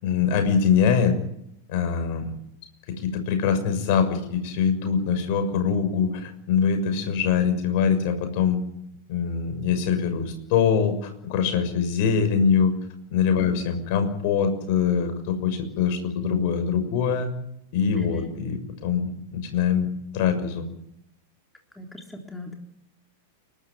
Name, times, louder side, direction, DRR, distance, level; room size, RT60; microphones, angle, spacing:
voice 1, 0.0-1.1 1.7-2.3 3.0-8.6 9.1-12.7 13.1-17.3 17.7-19.9 20.1-20.7, left 7 dB, 50° left, 8 dB, 6.5 m, -23 dB
voice 2, 21.8-22.6, left 2 dB, 5° left, 2 dB, 3.8 m, -39 dB
29.5 x 13.0 x 9.7 m, 0.77 s
figure-of-eight pair, 95°, 0 cm